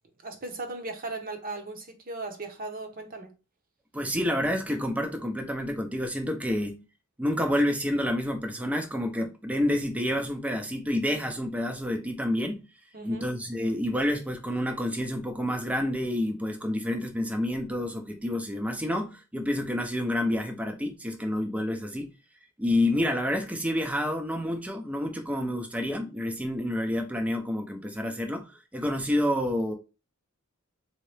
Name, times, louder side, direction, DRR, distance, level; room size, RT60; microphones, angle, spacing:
voice 1, 0.2-3.3 12.9-13.3, right 3 dB, 40° right, 0.8 m, -37 dB
voice 2, 3.9-6.8 7.2-12.7 13.0-22.1 22.6-29.7, left 1 dB, 5° right, 0.4 m, -29 dB
3.7 x 2.7 x 3.2 m
head